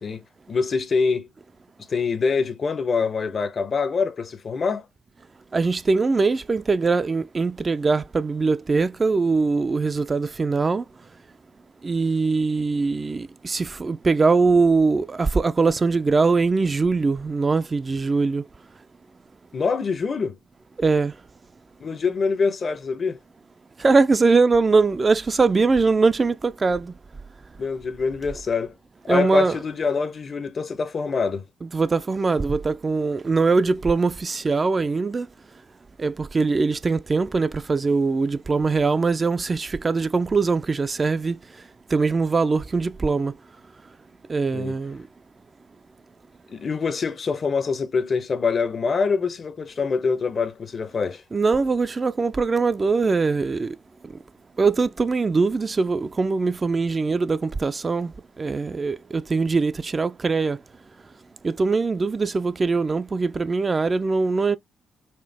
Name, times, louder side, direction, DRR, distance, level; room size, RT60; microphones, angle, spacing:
voice 1, 0.0-1.3 1.9-4.8 19.5-20.4 21.8-23.2 27.6-28.7 29.1-31.4 44.5-44.8 46.5-51.2, left 5 dB, 45° left, 0.7 m, -25 dB
voice 2, 5.5-10.8 11.8-18.4 20.8-21.1 23.8-26.9 29.1-29.6 31.6-35.3 36.0-41.4 41.9-43.3 44.3-45.0 51.3-53.7 54.6-58.1 58.4-60.6 61.4-64.6, right 4 dB, 35° right, 0.4 m, -22 dB
4.3 x 2.5 x 3.3 m
hypercardioid pair, 45°, 0 cm